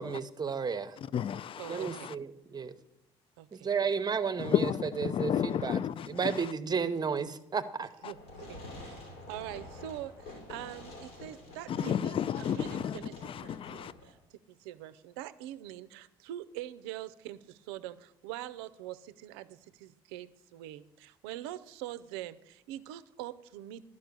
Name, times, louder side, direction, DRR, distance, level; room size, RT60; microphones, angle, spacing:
voice 1, 0.0-0.9 1.7-2.7 3.5-4.5 5.0-5.8 6.1-7.9, right 6 dB, 30° right, 12 dB, 0.8 m, -32 dB
voice 2, 1.0-2.2 4.4-6.5 8.0-8.1 11.7-13.9, left 9 dB, 45° left, 19 dB, 0.4 m, -32 dB
voice 3, 1.6-2.1 3.4-3.7 8.0-8.2 8.5-13.1 13.4-14.2 14.5-23.8, right 13 dB, 80° right, 15 dB, 0.5 m, -44 dB
Fireworks, 8.1-14.1, left 2 dB, 80° left, 3.2 m, -48 dB
11.5 x 5.2 x 6.7 m, 0.87 s
hypercardioid pair, 55°, 13 cm